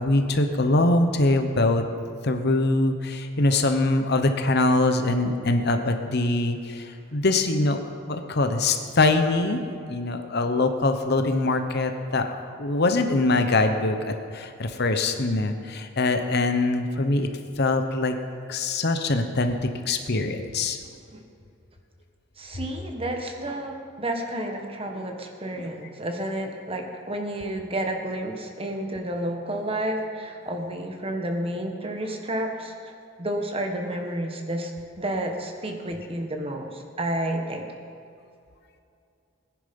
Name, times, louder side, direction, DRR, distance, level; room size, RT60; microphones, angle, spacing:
voice 1, 0.0-1.8 2.2-6.8 7.1-7.8 8.1-9.6 9.9-17.3 17.6-18.1 18.5-19.6 19.9-20.8 25.6-25.7, left 2 dB, 55° left, 6 dB, 1.0 m, -23 dB
voice 2, 22.4-32.9 33.2-34.7 35.0-36.7 37.0-37.6, right 1 dB, 30° right, 3 dB, 1.5 m, -30 dB
19.5 x 10.5 x 5.4 m, 2.5 s
head